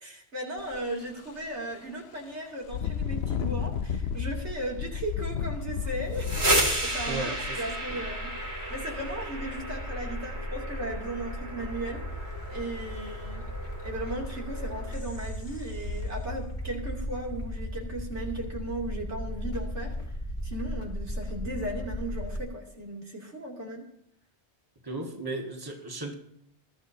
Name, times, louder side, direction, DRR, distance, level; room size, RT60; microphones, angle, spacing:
voice 1, 0.0-6.3 6.5-8.3 8.7-12.0 12.5-13.4 13.8-19.9 20.4-23.8, right 1 dB, 90° right, -1 dB, 3.3 m, -36 dB
Engine, 0.6-0.8 1.3-1.4 2.6-8.4 9.3-9.4 9.9-10.6 12.4-12.5 12.9-13.0 13.4-13.5 13.9-14.4 14.9-15.0 15.6-16.1, left 7 dB, 70° left, 0.9 m, -33 dB
sound 1, 5.4-22.4, equal, 40° left, 1.9 m, -37 dB
sound 2, 6.0-15.7, right 1 dB, 70° right, 3.3 m, -33 dB
voice 2, 7.1-7.6 7.9-8.0 24.8-26.1, right 2 dB, 20° right, 1 dB, 1.8 m, -35 dB
21.5 x 13.0 x 2.8 m, 0.73 s
omnidirectional pair, 1.1 m